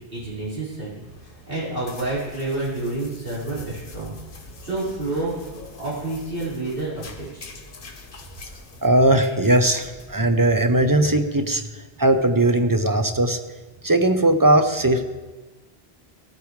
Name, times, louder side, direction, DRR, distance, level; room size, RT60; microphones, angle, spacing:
voice 1, 0.1-4.1 4.4-7.5, right 2 dB, 60° right, -9 dB, 4.5 m, -29 dB
sound 1, 0.9-10.9, left 3 dB, 60° left, 1.2 m, -45 dB
voice 2, 8.8-13.4 13.8-15.0, right 1 dB, 25° right, 6 dB, 0.6 m, -19 dB
18.0 x 8.4 x 3.2 m, 1.2 s
omnidirectional pair, 1.0 m